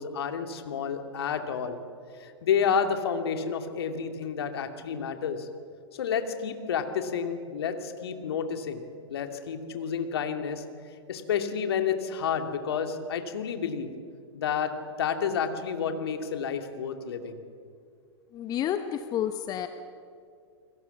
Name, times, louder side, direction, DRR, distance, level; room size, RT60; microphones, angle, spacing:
voice 1, 0.0-1.8 2.1-5.5 5.9-8.8 9.1-10.6 11.1-13.9 14.3-14.7 15.0-17.4, left 7 dB, 60° left, 6 dB, 2.5 m, -30 dB
voice 2, 18.3-19.7, left 10 dB, 25° left, 10 dB, 1.1 m, -30 dB
29.0 x 21.5 x 7.2 m, 2.3 s
figure-of-eight pair, 100°, 15 cm